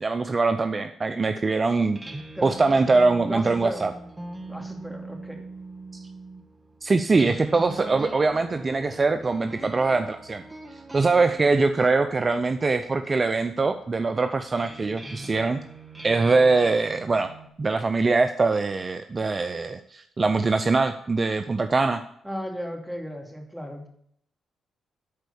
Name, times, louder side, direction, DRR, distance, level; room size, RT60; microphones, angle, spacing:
voice 1, 0.0-2.0 2.4-3.9 6.8-10.4 10.9-15.6 16.0-17.3 17.6-22.0, right 3 dB, 40° right, 8 dB, 0.6 m, -22 dB
sound 1, 1.8-17.5, right 2 dB, 20° right, 1.3 m, -42 dB
voice 2, 2.3-2.7 3.3-3.8 4.4-5.4 22.2-23.9, equal, ahead, 2 dB, 2.6 m, -35 dB
11.0 x 4.6 x 7.0 m, 0.70 s
supercardioid pair, 50°, 0 cm